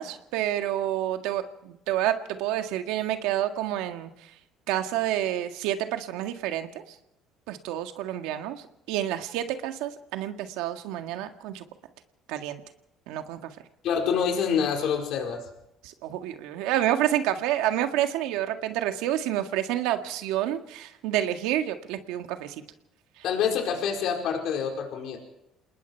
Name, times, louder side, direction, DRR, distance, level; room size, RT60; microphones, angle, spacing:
voice 1, 0.0-4.1 4.7-6.9 7.5-11.6 12.3-12.6 13.1-13.5 15.8-22.5 23.2-23.3, right 12 dB, 85° right, 6 dB, 1.8 m, -29 dB
voice 2, 13.8-15.4 23.2-25.2, left 7 dB, 70° left, 2 dB, 4.7 m, -26 dB
28.0 x 20.0 x 4.6 m, 0.82 s
cardioid pair, 110°, 0 cm